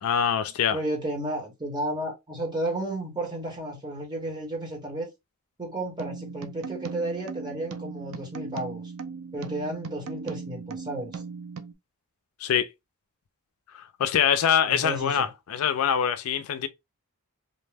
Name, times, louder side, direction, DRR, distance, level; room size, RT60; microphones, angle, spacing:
voice 1, 0.0-0.8 12.4-12.7 13.7-16.7, left 8 dB, 70° left, 0.4 m, -24 dB
voice 2, 0.7-5.1 5.6-8.8 9.3-11.2 14.6-15.3, right 1 dB, 20° right, 1.1 m, -32 dB
sound 1, 6.0-11.7, right 5 dB, 70° right, 0.4 m, -38 dB
2.6 x 2.1 x 3.2 m
head